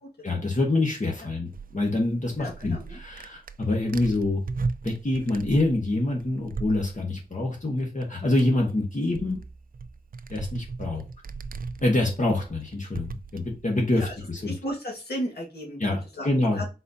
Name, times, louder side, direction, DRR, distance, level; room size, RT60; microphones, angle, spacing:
voice 1, 0.2-4.4 4.8-9.4 10.3-11.0 11.8-14.5 15.8-16.6, left 2 dB, 50° left, 0 dB, 1.2 m, -26 dB
sound 1, 1.5-7.1 8.0-8.1 8.3-14.3, right 4 dB, 60° right, 0.4 m, -37 dB
voice 2, 2.4-3.0 14.0-14.1 14.5-15.8 16.2-16.7, equal, 85° left, -2 dB, 1.7 m, -34 dB
4.0 x 4.0 x 2.6 m, 0.31 s
wide cardioid pair, 50°, 16 cm